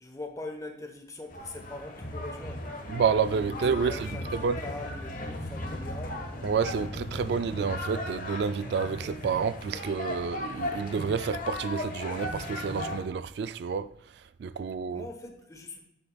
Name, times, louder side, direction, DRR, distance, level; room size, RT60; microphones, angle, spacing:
voice 1, 0.0-2.7 3.5-6.3 14.9-15.9, left 2 dB, 20° left, 1.0 m, -42 dB
sound 1, 1.3-13.0, left 1 dB, 45° left, 1.3 m, -36 dB
voice 2, 2.9-4.6 6.4-13.9 14.4-15.0, right 6 dB, 60° right, 0.3 m, -29 dB
9.4 x 8.0 x 2.3 m
head